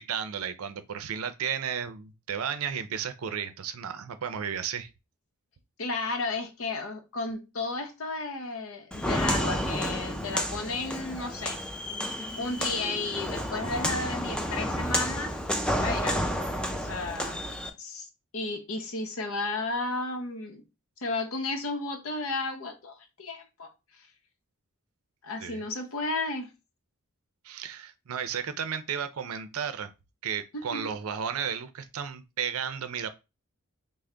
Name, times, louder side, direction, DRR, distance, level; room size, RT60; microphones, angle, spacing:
voice 1, 0.0-4.9 25.4-25.6 27.4-29.9 30.2-33.1, right 7 dB, 80° right, 0.5 m, -33 dB
voice 2, 5.8-11.6 12.4-15.4 15.7-16.3 16.8-17.4 17.8-20.6 21.0-23.7 25.2-26.5 30.5-30.9, left 3 dB, 70° left, 0.7 m, -33 dB
Walk footsteps, 8.9-17.7, equal, 5° left, 0.3 m, -31 dB
3.4 x 2.0 x 3.7 m
head